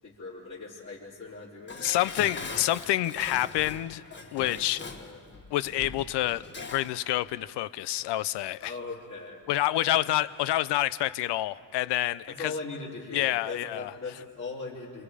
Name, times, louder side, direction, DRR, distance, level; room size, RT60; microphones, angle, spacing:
voice 1, 0.0-2.3 4.8-5.2 8.6-9.4 9.8-10.0 12.3-15.0, left 3 dB, 45° left, 4.2 m, -40 dB
Dishes pots and pans, 1.7-7.0 7.3-7.4, left 3 dB, 25° left, 1.4 m, -41 dB
voice 2, 1.8-4.0 4.3-4.8 5.5-8.7 9.5-12.3 13.1-13.9, left 14 dB, 75° left, 0.7 m, -28 dB
28.0 x 27.0 x 5.0 m
cardioid pair, 140°, 42 cm